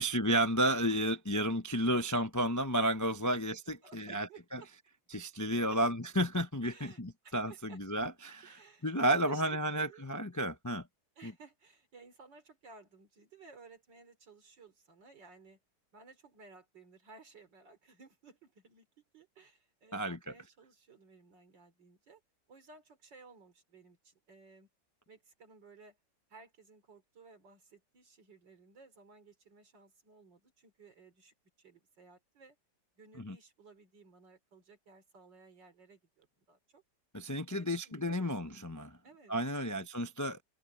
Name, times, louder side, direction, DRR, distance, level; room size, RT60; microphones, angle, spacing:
voice 1, 0.0-4.3 4.5-4.6 5.1-8.6 8.8-10.9 11.2-11.3 19.9-20.2 33.2-33.4 37.1-38.9 39.3-40.4, right 1 dB, 20° left, 0.4 m, -32 dB
voice 2, 3.8-4.7 5.7-5.8 6.6-7.8 8.4-10.1 11.2-15.6 15.9-22.2 22.5-24.7 25.1-26.0 26.3-32.6 33.0-36.8 37.5-38.7 39.0-39.9, right 4 dB, 80° right, 3.9 m, -57 dB
omnidirectional pair, 1.9 m